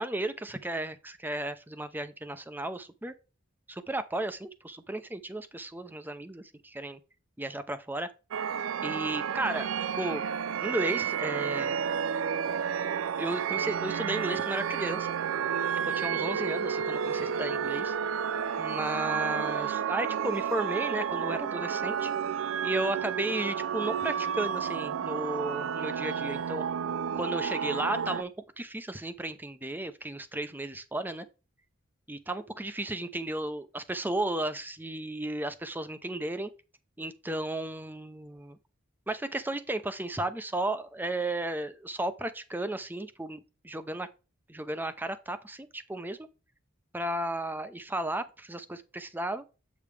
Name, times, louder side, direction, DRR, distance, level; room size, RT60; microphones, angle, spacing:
voice 1, 0.0-3.1 3.7-7.0 7.4-8.1 8.8-9.7 10.0-10.2 10.6-11.8 13.2-15.1 15.9-18.0 18.6-22.1 22.6-26.6 27.1-28.3 28.6-31.3 32.1-36.5 37.0-38.6 39.1-44.1 44.5-46.2 46.9-49.4, right 1 dB, 10° right, 0.6 m, -34 dB
sound 1, 8.3-28.2, right 7 dB, 85° right, 0.4 m, -31 dB
7.9 x 5.1 x 3.3 m
head